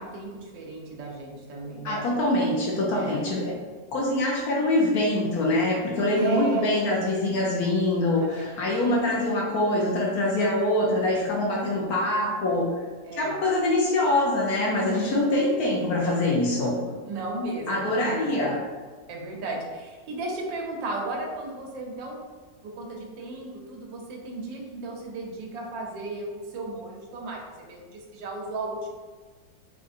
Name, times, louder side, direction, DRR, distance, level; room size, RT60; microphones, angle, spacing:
voice 1, 0.0-2.0 2.9-3.2 6.1-6.7 8.1-9.2 13.0-13.4 14.6-15.4 16.6-16.7 17.0-18.4 19.1-22.2 22.6-28.9, right 2 dB, 85° right, -1 dB, 1.3 m, -35 dB
voice 2, 1.8-3.5 3.9-12.7 13.2-16.8 17.7-18.6, left 1 dB, 70° left, -3 dB, 0.9 m, -24 dB
3.7 x 2.4 x 2.4 m, 1.4 s
omnidirectional pair, 2.0 m